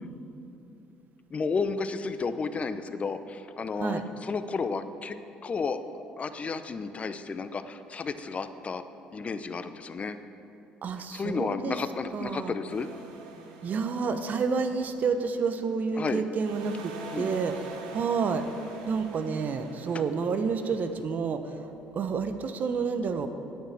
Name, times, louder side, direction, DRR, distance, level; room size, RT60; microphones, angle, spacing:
voice 1, 1.3-5.2 5.4-5.8 6.2-8.8 9.1-10.2 11.1-12.9 16.0-16.2 17.1-17.3 19.9-20.0, left 4 dB, 35° left, 11 dB, 0.7 m, -32 dB
voice 2, 10.8-11.8 12.1-12.6 13.6-18.5 18.9-23.3, right 5 dB, 50° right, 9 dB, 1.0 m, -29 dB
sound 1, 12.7-16.1 16.3-20.9, right 4 dB, 90° right, 0.9 m, -45 dB
9.0 x 8.6 x 7.5 m, 2.8 s
hypercardioid pair, 65°, 4 cm